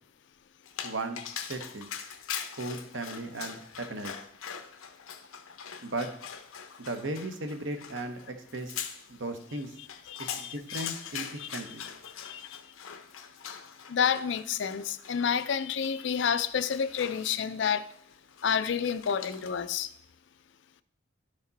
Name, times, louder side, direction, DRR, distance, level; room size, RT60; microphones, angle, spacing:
Dog, 0.7-19.7, left 8 dB, 85° left, 0.7 m, -43 dB
voice 1, 0.8-1.2 1.5-1.9 2.6-4.1 5.8-6.1 6.8-8.8 9.1-9.7 10.2-11.9, right 2 dB, 65° right, 1.0 m, -36 dB
voice 2, 10.1-10.9 11.4-11.5 12.2-12.4 13.9-17.9 18.4-19.9, left 7 dB, 60° left, 0.4 m, -29 dB
11.0 x 5.1 x 4.0 m
head